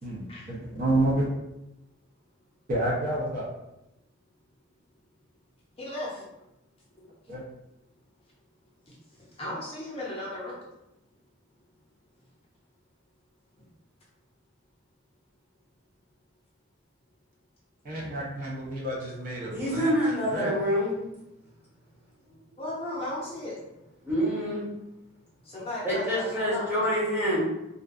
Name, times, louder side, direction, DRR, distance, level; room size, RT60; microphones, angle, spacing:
voice 1, 0.0-1.3 2.7-3.5 7.3-7.4 17.8-19.9 20.2-20.5, right 1 dB, 45° right, -4 dB, 0.5 m, -29 dB
voice 2, 5.8-6.2 8.9-10.6 22.6-23.5 25.4-26.9, left 1 dB, 30° left, -5 dB, 0.6 m, -36 dB
voice 3, 19.5-20.9 24.0-24.7 25.8-27.5, equal, 10° right, -8 dB, 0.8 m, -26 dB
2.5 x 2.2 x 2.3 m, 0.89 s
head